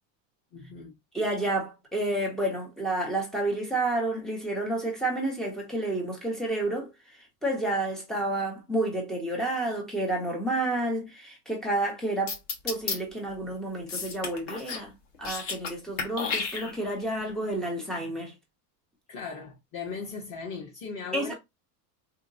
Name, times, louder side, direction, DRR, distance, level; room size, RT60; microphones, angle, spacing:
voice 1, 0.5-0.9 19.1-21.3, left 5 dB, 35° left, 0.9 m, -38 dB
voice 2, 1.1-6.9 7.4-12.4 12.6-14.9 15.2-18.3 21.1-21.3, right 1 dB, ahead, 0.3 m, -30 dB
sound 1, 12.3-13.0 13.9-14.9 15.1-15.7 16.0-17.0, left 5 dB, 55° left, 1.3 m, -32 dB
3.5 x 2.8 x 2.5 m
supercardioid pair, 140°, 49 cm